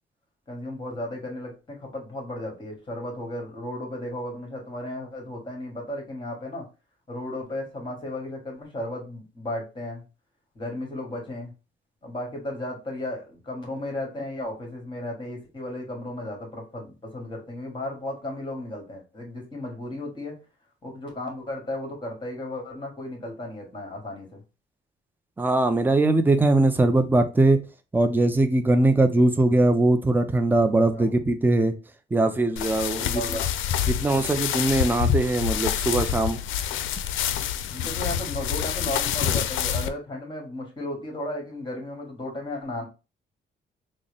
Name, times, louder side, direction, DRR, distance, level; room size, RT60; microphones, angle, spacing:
voice 1, 0.5-6.7 7.1-10.0 10.6-11.5 12.0-20.4 20.8-24.4 30.9-31.1 32.8-33.5 34.1-34.2 37.7-42.9, left 1 dB, 25° left, 1.9 m, -34 dB
voice 2, 25.4-27.6 27.9-31.7 32.1-33.2 33.9-36.4, right 2 dB, 10° right, 0.5 m, -21 dB
sound 1, 32.6-39.9, left 9 dB, 80° left, 0.4 m, -27 dB
3.8 x 2.1 x 3.4 m
cardioid pair, 90°, 20 cm